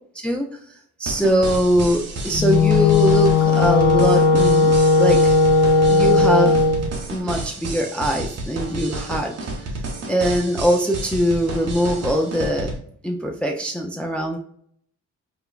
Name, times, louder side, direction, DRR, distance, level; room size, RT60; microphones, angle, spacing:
voice 1, 0.1-0.6 1.0-5.4 5.9-6.6 7.1-9.3 10.1-12.7 13.0-14.4, equal, 5° left, 2 dB, 0.4 m, -22 dB
sound 1, 1.1-12.8, right 2 dB, 55° right, 1.0 m, -31 dB
Wind instrument woodwind instrument, 2.3-6.8, left 3 dB, 70° left, 1.0 m, -16 dB
5.0 x 2.2 x 2.4 m, 0.64 s
cardioid pair, 90°, 30 cm